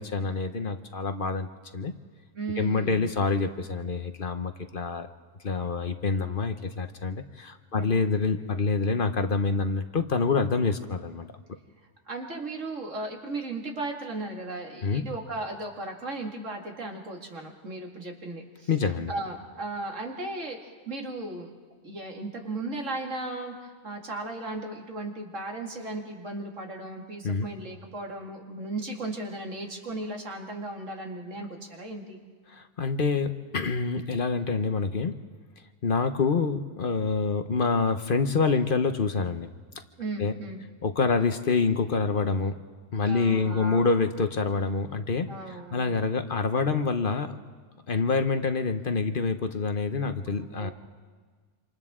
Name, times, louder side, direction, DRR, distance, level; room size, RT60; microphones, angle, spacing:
voice 1, 0.0-1.5 1.7-1.9 2.6-5.1 5.4-11.3 14.8-15.0 18.7-19.1 27.2-27.5 32.5-35.2 35.8-39.5 40.2-40.3 40.8-42.6 42.9-45.3 45.7-47.3 47.9-50.7, left 4 dB, 50° left, 8 dB, 1.0 m, -26 dB
voice 2, 2.4-3.1 7.8-7.9 12.1-18.7 19.1-21.5 21.8-32.2 40.0-40.6 43.0-44.0 45.3-46.0 50.3-50.7, right 2 dB, 85° right, 1 dB, 2.6 m, -36 dB
27.0 x 26.5 x 3.7 m, 1.5 s
omnidirectional pair, 1.3 m